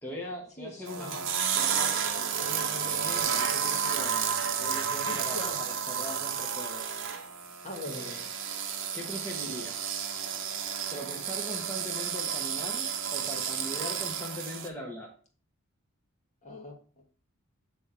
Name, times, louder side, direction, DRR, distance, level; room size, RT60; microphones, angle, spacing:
voice 1, 0.0-6.9 7.9-8.3 8.9-9.9 10.9-15.1, equal, 10° left, -2 dB, 1.0 m, -41 dB
voice 2, 0.6-1.2 5.1-5.6 7.6-8.2 16.4-17.0, left 2 dB, 35° left, 1 dB, 1.5 m, -42 dB
sound 1, 0.9-14.7, right 7 dB, 60° right, 0.8 m, -31 dB
6.4 x 3.5 x 5.5 m, 0.41 s
head